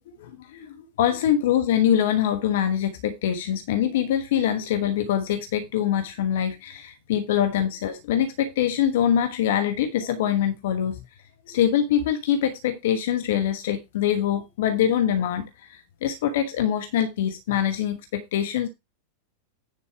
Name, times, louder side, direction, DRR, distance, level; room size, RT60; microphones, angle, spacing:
voice 1, 0.2-11.0 11.5-18.7, left 10 dB, 55° left, 1.2 m, -24 dB
10.0 x 5.0 x 4.7 m
figure-of-eight pair, 90°, 0 cm